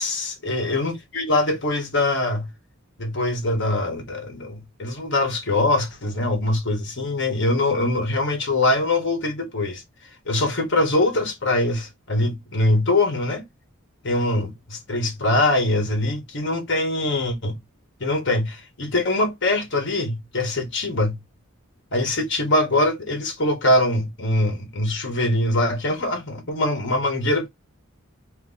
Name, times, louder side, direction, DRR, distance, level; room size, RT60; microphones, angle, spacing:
voice 1, 0.0-2.5 3.0-9.8 10.3-13.4 14.0-17.6 18.0-21.2 21.9-27.5, left 2 dB, 55° left, 1.3 m, -23 dB
3.0 x 2.6 x 3.8 m
head